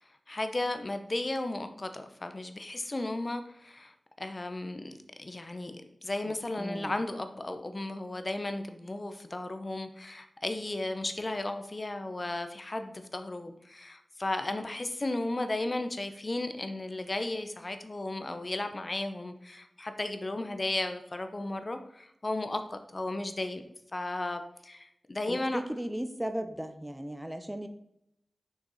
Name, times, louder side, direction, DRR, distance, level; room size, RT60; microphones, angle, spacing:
voice 1, 0.0-23.6 23.9-25.6, left 2 dB, 35° left, 8 dB, 0.7 m, -35 dB
voice 2, 6.3-6.9 25.3-27.7, right 1 dB, 10° right, 8 dB, 0.6 m, -36 dB
6.5 x 5.8 x 4.0 m, 0.79 s
wide cardioid pair, 85°, 0 cm